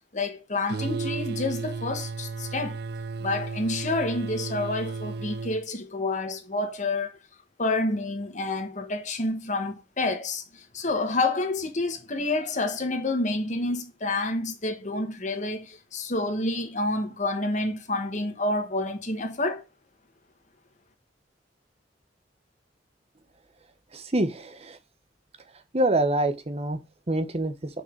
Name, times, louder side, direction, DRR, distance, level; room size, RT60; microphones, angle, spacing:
voice 1, 0.1-2.8 3.2-7.1 7.6-10.4 10.7-19.6, left 2 dB, 45° left, 1.5 m, -28 dB
sound 1, 0.7-5.6, right 4 dB, 60° right, 0.5 m, -33 dB
voice 2, 23.9-24.8 25.7-26.8 27.1-27.5, right 1 dB, 35° right, 1.0 m, -25 dB
6.1 x 5.2 x 4.6 m
head